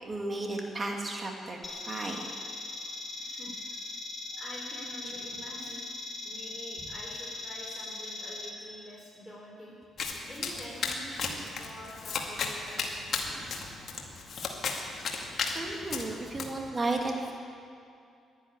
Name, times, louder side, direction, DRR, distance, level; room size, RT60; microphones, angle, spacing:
voice 1, 0.0-2.3 6.8-6.9 12.8-12.9 13.2-13.9 14.8-15.2 15.5-17.3, right 2 dB, 30° right, 1 dB, 2.5 m, -35 dB
sound 1, 1.6-8.5, left 3 dB, 30° left, 1.9 m, -40 dB
voice 2, 3.2-3.7 4.4-5.8 6.2-9.8 10.3-13.4, equal, 5° left, -6 dB, 3.7 m, -46 dB
Domestic sounds home sounds, 10.0-16.4, left 4 dB, 55° left, 2.1 m, -35 dB
11.0 x 11.0 x 9.9 m, 2.5 s
cardioid pair, 90°, 0 cm